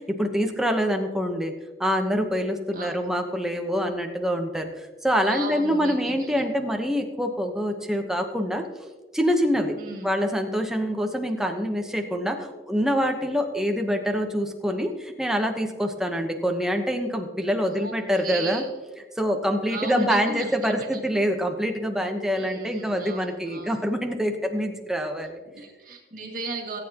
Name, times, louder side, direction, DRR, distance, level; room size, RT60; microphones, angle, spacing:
voice 1, 0.0-1.5 1.8-4.7 5.0-8.9 9.1-9.7 10.0-18.6 19.2-25.4, equal, 5° right, 3 dB, 1.0 m, -25 dB
voice 2, 5.2-6.4 9.8-10.1 17.7-18.7 19.7-20.7 22.4-23.9 25.5-26.8, right 3 dB, 50° right, 0 dB, 2.2 m, -36 dB
18.0 x 8.8 x 3.0 m, 1.3 s
head